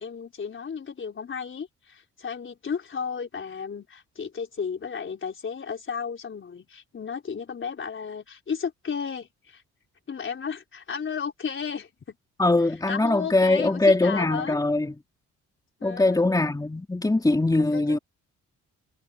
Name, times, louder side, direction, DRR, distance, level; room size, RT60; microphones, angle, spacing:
voice 1, 0.0-9.6 10.1-12.2 12.9-14.6 15.8-16.3 17.7-18.0, left 6 dB, 40° left, 4.4 m, -34 dB
voice 2, 12.4-14.9 15.8-18.0, left 2 dB, 10° left, 3.1 m, -22 dB
cardioid pair, 90°, 30 cm